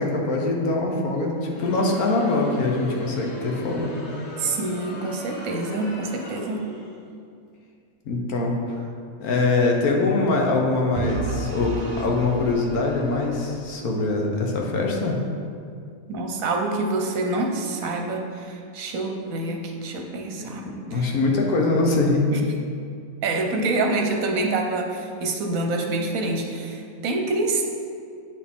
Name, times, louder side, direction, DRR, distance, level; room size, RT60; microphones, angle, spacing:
voice 1, 0.0-4.0 8.1-8.6 9.2-15.2 20.4-22.3 22.6-22.7, left 3 dB, 80° left, 0 dB, 1.4 m, -23 dB
Crowd, 1.3-7.1, left 1 dB, 50° left, 1.2 m, -38 dB
voice 2, 4.4-6.7 16.1-20.6 20.9-21.1 22.3-22.4 23.2-27.7, right 2 dB, 75° right, 2 dB, 1.2 m, -26 dB
Vehicle / Engine, 10.9-14.0, right 2 dB, 40° right, 0.8 m, -32 dB
8.8 x 4.3 x 3.6 m, 2.3 s
omnidirectional pair, 1.5 m